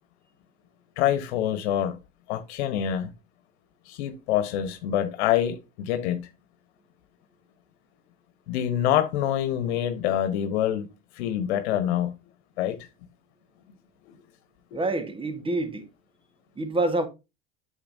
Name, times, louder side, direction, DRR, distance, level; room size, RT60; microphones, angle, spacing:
voice 1, 1.0-2.0 2.3-3.1 3.9-6.3 8.5-10.9 11.1-12.1 12.6-12.8 14.1-14.2, left 11 dB, 80° left, 1.2 m, -26 dB
voice 2, 14.7-15.8 16.6-17.1, right 2 dB, 15° right, 1.5 m, -27 dB
8.6 x 7.0 x 2.7 m
supercardioid pair, 105°, 33 cm